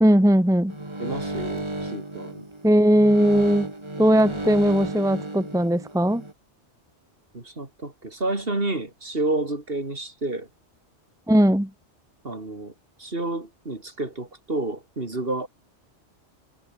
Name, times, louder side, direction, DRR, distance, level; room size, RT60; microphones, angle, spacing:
voice 1, 0.0-0.7 2.6-3.7 4.0-6.2 11.3-11.7, equal, 5° right, 1.2 m, -18 dB
sound 1, 0.7-6.3, right 1 dB, 25° right, 2.7 m, -33 dB
voice 2, 1.0-2.5 7.3-10.5 12.2-12.7 13.0-15.5, right 2 dB, 55° right, 4.0 m, -30 dB
omnidirectional pair, 1.2 m